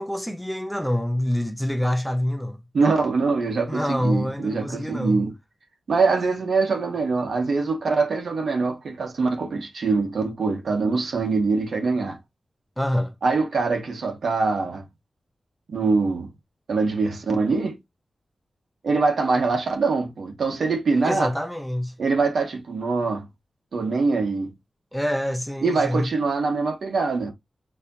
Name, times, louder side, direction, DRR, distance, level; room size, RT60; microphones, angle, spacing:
voice 1, 0.0-2.6 3.7-5.2 12.8-13.1 20.9-21.9 24.9-26.1, left 1 dB, ahead, 0.7 m, -26 dB
voice 2, 2.7-5.3 5.9-12.2 13.2-14.9 15.7-16.3 16.7-17.8 18.8-21.3 22.0-23.3 23.7-24.5 25.6-27.3, right 4 dB, 75° right, 1.6 m, -23 dB
4.4 x 3.3 x 2.8 m
wide cardioid pair, 130°, 0 cm